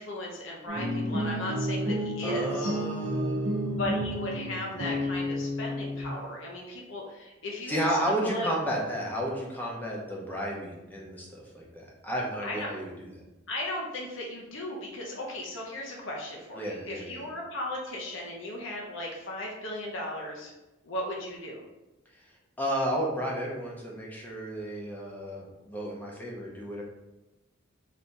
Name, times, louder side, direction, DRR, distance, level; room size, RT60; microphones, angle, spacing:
voice 1, 0.0-2.8 3.8-8.5 12.4-12.7 13.5-20.5 20.8-21.6, left 1 dB, 70° left, -2 dB, 0.7 m, -36 dB
sound 1, 0.7-6.1, equal, 75° right, 0.9 m, -31 dB
voice 2, 2.2-3.8 4.4-4.9 7.7-13.1 16.5-17.2 22.6-26.8, equal, 10° left, -3 dB, 0.7 m, -32 dB
4.1 x 2.8 x 3.5 m, 1.0 s
head